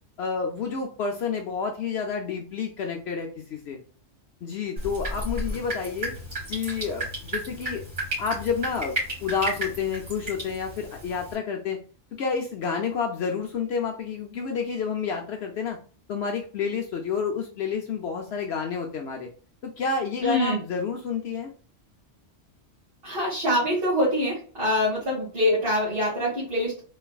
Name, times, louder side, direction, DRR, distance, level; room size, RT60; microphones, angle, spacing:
voice 1, 0.2-3.8 4.4-6.1 6.5-7.1 7.3-7.8 8.2-8.9 9.2-11.8 12.2-15.8 16.1-19.3 19.6-21.5, left 5 dB, 65° left, 2 dB, 0.9 m, -29 dB
Drip, 4.8-11.3, right 1 dB, 80° right, 2.6 m, -33 dB
voice 2, 20.2-20.6 23.0-26.8, left 1 dB, 55° right, -7 dB, 1.9 m, -24 dB
3.9 x 3.2 x 2.3 m, 0.39 s
omnidirectional pair, 1.2 m